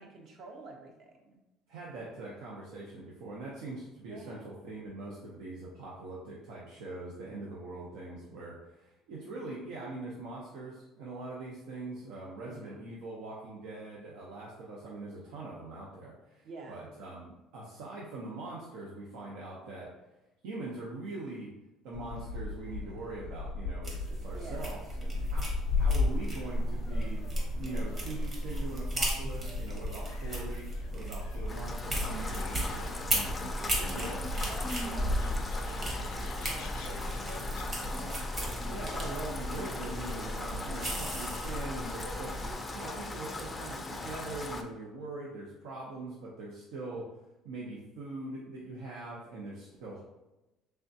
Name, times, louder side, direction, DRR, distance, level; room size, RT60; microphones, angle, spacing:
voice 1, 0.0-1.4 4.0-4.5 12.4-12.9 16.4-16.9 24.2-24.7 32.0-32.4 33.6-38.3, right 3 dB, 55° right, 2 dB, 0.7 m, -48 dB
voice 2, 1.7-19.9 20.4-21.5 21.8-25.4 25.8-27.2 27.6-33.3 33.9-34.2 38.7-42.3 42.7-47.1 47.4-50.0, right 2 dB, 85° right, -4 dB, 0.7 m, -42 dB
Gull seagull, 21.9-37.6, left 4 dB, 80° left, 0.5 m, -39 dB
sound 1, 23.8-42.5, equal, 30° right, 1.0 m, -35 dB
Rain, 31.5-44.6, left 2 dB, 15° left, 0.4 m, -39 dB
3.5 x 3.4 x 2.7 m, 0.97 s
cardioid pair, 130°, 0 cm